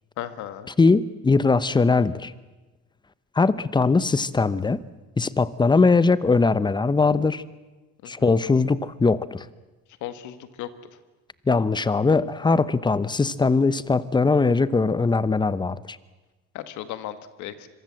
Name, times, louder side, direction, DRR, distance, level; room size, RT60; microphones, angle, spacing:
voice 1, 0.2-0.7 8.0-8.1 10.0-10.7 16.5-17.7, left 12 dB, 80° left, 11 dB, 1.8 m, -35 dB
voice 2, 0.8-2.3 3.4-4.8 5.2-7.4 8.1-9.4 11.5-15.8, left 4 dB, 15° left, 16 dB, 0.8 m, -20 dB
25.5 x 23.0 x 7.6 m, 1.2 s
cardioid pair, 115°, 29 cm